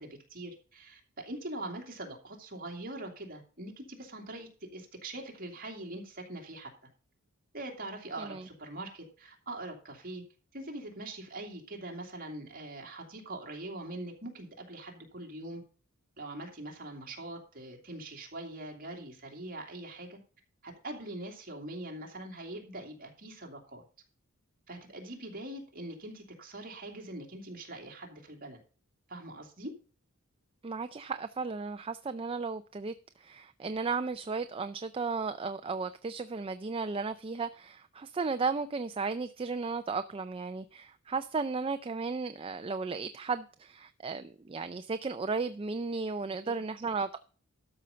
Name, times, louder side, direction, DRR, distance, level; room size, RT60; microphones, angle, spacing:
voice 1, 0.0-6.7 7.5-10.2 10.5-15.6 16.2-20.2 20.6-23.8 24.7-28.6 29.1-29.7 46.4-46.6, right 1 dB, 40° right, 2.6 m, -43 dB
voice 2, 30.6-47.2, right 4 dB, 25° right, 0.4 m, -35 dB
12.5 x 5.7 x 5.1 m
head